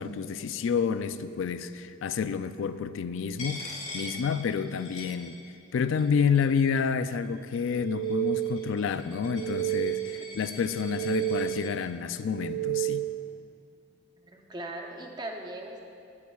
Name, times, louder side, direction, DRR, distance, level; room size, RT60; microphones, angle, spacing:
voice 1, 0.0-3.7 3.9-5.4 5.7-13.1, left 6 dB, 70° left, 12 dB, 0.3 m, -29 dB
Coin (dropping), 3.4-5.7 6.0-6.8 7.5-11.7, left 2 dB, 30° left, 1.6 m, -43 dB
sound 1, 7.7-8.8 9.2-10.3 10.7-11.8 12.2-13.3, right 20 dB, 55° right, 0.4 m, -31 dB
voice 2, 14.2-15.8, right 1 dB, 20° right, 1 dB, 0.7 m, -39 dB
17.0 x 8.4 x 2.3 m, 2.5 s
head